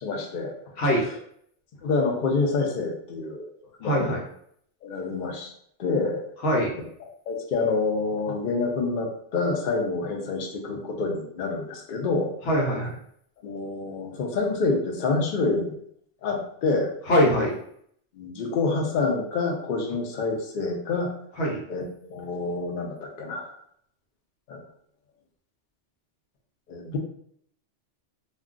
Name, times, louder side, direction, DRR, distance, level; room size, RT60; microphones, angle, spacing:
voice 1, 0.0-1.0 1.8-3.5 3.8-4.1 4.8-5.5 5.8-6.3 7.3-12.3 13.4-15.8 16.2-16.9 18.1-21.1 21.7-21.8 22.1-23.5 24.5-24.6 26.7-27.0, left 3 dB, 55° left, 2 dB, 0.6 m, -27 dB
voice 2, 3.8-4.2 6.4-6.7 12.5-13.0 17.1-17.5 21.4-21.6 26.8-26.9, equal, 85° left, -2 dB, 1.1 m, -22 dB
2.2 x 2.2 x 3.6 m, 0.68 s
omnidirectional pair, 1.2 m